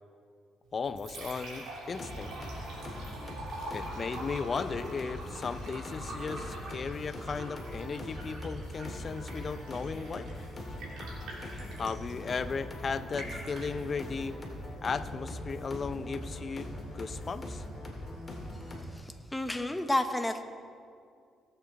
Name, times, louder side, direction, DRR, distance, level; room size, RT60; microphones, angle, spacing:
Liquid, 0.6-19.6, right 2 dB, 80° right, 2.8 m, -47 dB
voice 1, 0.7-2.3 3.7-10.3 11.8-14.4 14.8-17.6, left 5 dB, 40° left, 13 dB, 0.5 m, -36 dB
sound 1, 1.9-18.8, left 1 dB, 25° left, 2.5 m, -41 dB
voice 2, 18.7-20.4, left 1 dB, 10° left, 8 dB, 0.8 m, -31 dB
17.5 x 7.7 x 4.1 m, 2.3 s
cardioid pair, 90°, 0 cm